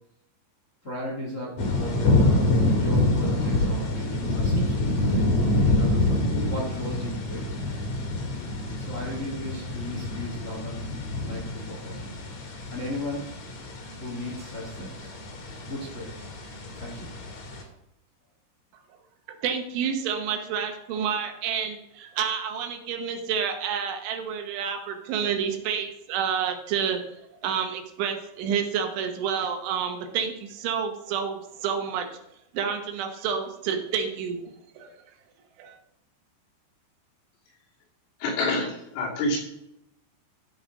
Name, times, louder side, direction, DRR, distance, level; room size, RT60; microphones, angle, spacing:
voice 1, 0.8-2.2 2.6-5.2 5.6-7.6 8.7-10.9 11.2-12.2 12.7-13.2 14.0-15.1 15.7-16.3 16.8-17.1, left 1 dB, 65° left, -3 dB, 0.7 m, -36 dB
sound 1, 1.6-17.6, left 2 dB, 50° left, 2.6 m, -26 dB
voice 2, 19.3-27.0 27.4-32.1 32.5-34.9 35.6-35.8, right 7 dB, 75° right, 4 dB, 3.5 m, -29 dB
voice 3, 38.2-39.4, left 2 dB, 90° left, -3 dB, 5.4 m, -27 dB
13.5 x 7.0 x 5.2 m, 0.83 s
omnidirectional pair, 5.7 m